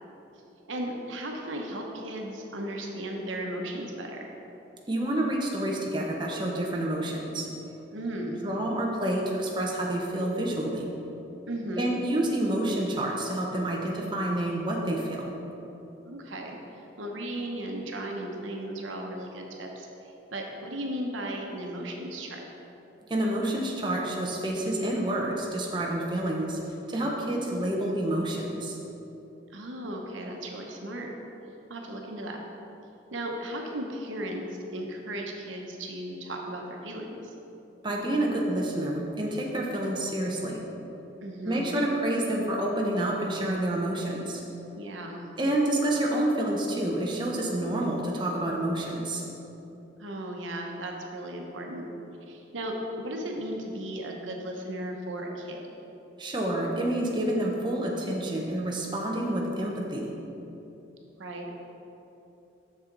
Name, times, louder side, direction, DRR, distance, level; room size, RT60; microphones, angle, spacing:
voice 1, 0.7-4.3 7.9-8.4 11.5-11.8 16.0-22.4 29.5-31.1 31.7-32.4 33.1-34.4 34.7-37.3 41.2-41.6 44.8-45.2 50.0-51.8 52.3-55.7 61.2-61.5, right 1 dB, 90° right, 1 dB, 0.9 m, -36 dB
voice 2, 4.9-7.5 8.4-10.9 11.8-15.4 23.1-26.6 26.9-28.8 37.8-40.7 41.5-44.4 45.4-49.2 56.2-60.2, right 1 dB, 25° right, -2 dB, 0.8 m, -28 dB
7.4 x 6.6 x 3.9 m, 3.0 s
head